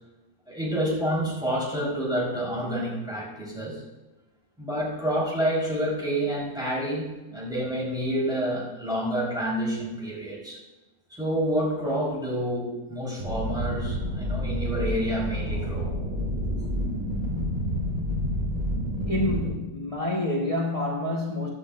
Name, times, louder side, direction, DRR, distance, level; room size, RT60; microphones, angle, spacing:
voice 1, 0.5-3.8 4.6-10.6 11.1-15.9 16.6-16.7, right 1 dB, 5° right, -5 dB, 4.4 m, -28 dB
sound 1, 13.2-19.5, equal, 70° right, 3.3 m, -29 dB
voice 2, 19.0-21.5, left 2 dB, 25° left, -3 dB, 1.5 m, -27 dB
15.5 x 11.0 x 2.6 m, 1.1 s
omnidirectional pair, 1.5 m